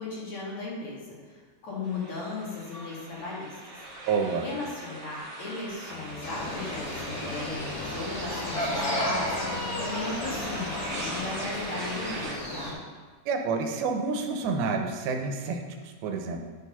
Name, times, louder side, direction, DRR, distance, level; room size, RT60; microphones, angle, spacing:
voice 1, 0.0-3.7 4.4-12.8, left 3 dB, 50° left, -6 dB, 3.2 m, -36 dB
sound 1, 1.8-12.3, right 2 dB, 50° right, 2.1 m, -40 dB
voice 2, 4.1-4.5 13.3-15.6 16.0-16.5, right 4 dB, 85° right, 4 dB, 2.8 m, -28 dB
sound 2, 5.9-11.7, left 5 dB, 75° left, 2.4 m, -42 dB
sound 3, 6.2-12.7, left 1 dB, 35° left, 1.7 m, -33 dB
11.0 x 4.8 x 5.6 m, 1.4 s
omnidirectional pair, 4.3 m